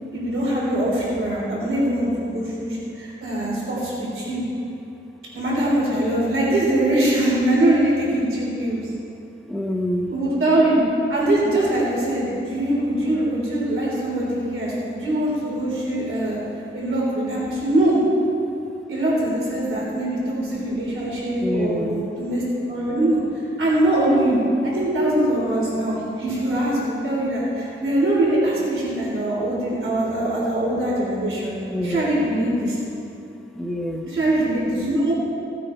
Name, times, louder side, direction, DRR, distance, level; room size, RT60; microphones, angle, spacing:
voice 1, 0.1-4.4 5.3-8.8 10.1-10.8 11.1-16.4 16.7-18.0 18.9-22.4 22.7-31.6 31.8-32.8 34.0-35.1, right 1 dB, 80° right, -5 dB, 3.6 m, -22 dB
voice 2, 9.5-10.1 21.4-22.1 31.7-32.4 33.6-34.0, equal, ahead, 4 dB, 0.8 m, -26 dB
17.0 x 9.3 x 4.5 m, 2.7 s
wide cardioid pair, 160°, 21 cm